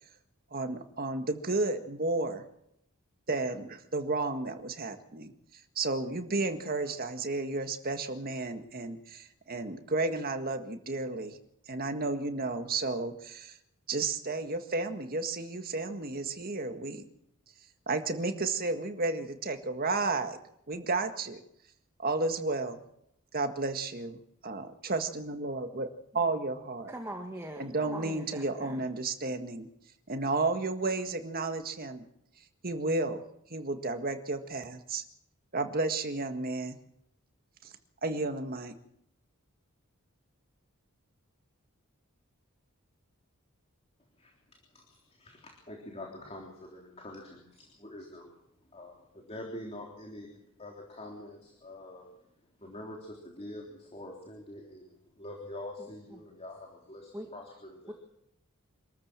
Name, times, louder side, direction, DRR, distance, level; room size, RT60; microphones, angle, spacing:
voice 1, 0.5-2.4 3.3-5.3 5.8-11.4 11.7-13.6 13.9-17.0 17.9-20.4 20.7-21.4 22.0-22.8 23.3-25.9 26.1-26.9 27.6-29.7 30.1-32.1 32.6-33.2 33.5-35.0 35.5-36.8 37.6-37.7 38.0-38.7, right 3 dB, 45° right, 7 dB, 1.8 m, -32 dB
voice 2, 26.9-28.9 55.8-56.2 57.1-57.3 57.9-58.0, right 1 dB, 10° right, 3 dB, 1.9 m, -42 dB
voice 3, 44.7-48.3 48.7-50.3 50.6-52.1 52.6-57.9, left 1 dB, 30° left, 0 dB, 3.5 m, -45 dB
26.0 x 13.5 x 7.5 m, 0.78 s
head